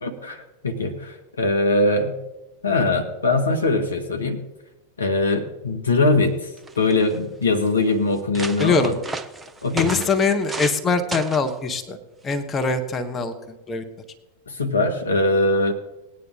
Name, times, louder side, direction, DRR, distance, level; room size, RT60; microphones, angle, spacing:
voice 1, 0.0-2.2 2.6-4.4 5.0-6.5 6.8-8.9 9.6-10.0 14.5-15.7, left 2 dB, 75° left, 4 dB, 1.6 m, -21 dB
sound 1, 6.2-6.3 6.6-7.2 7.8-7.9 8.1-10.8 11.1-11.5 12.3-12.6, right 3 dB, 10° right, 0.7 m, -33 dB
voice 2, 8.6-9.0 9.7-12.0 12.2-13.3 13.7-13.8, left 4 dB, 20° left, 6 dB, 1.2 m, -22 dB
18.5 x 9.4 x 3.8 m, 1.0 s
figure-of-eight pair, 90°, 0 cm